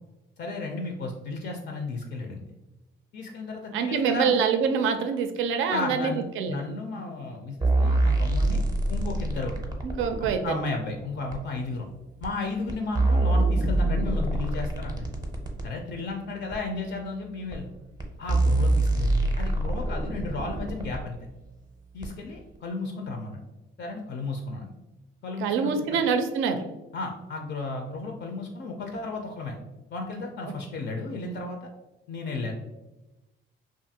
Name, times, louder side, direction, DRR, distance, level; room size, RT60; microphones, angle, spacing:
voice 1, 0.4-2.5 3.1-4.3 5.7-8.6 8.9-9.5 10.2-11.9 12.2-15.1 15.6-17.7 18.2-21.2 21.9-23.4 23.8-24.7 25.2-26.0 26.9-29.6 29.9-31.7 32.1-32.5, left 3 dB, 60° left, 3 dB, 0.4 m, -34 dB
voice 2, 3.7-6.6 9.8-10.7 25.4-26.6, right 6 dB, 80° right, 7 dB, 0.4 m, -25 dB
sound 1, 7.6-10.3 11.3-11.4 12.2-12.3 12.7-15.7 16.5-16.6 17.5-17.6 18.0-18.1 18.3-21.0 22.0-22.1, right 2 dB, 20° right, 0.5 m, -25 dB
2.5 x 2.4 x 2.7 m, 1.0 s
cardioid pair, 90°, 20 cm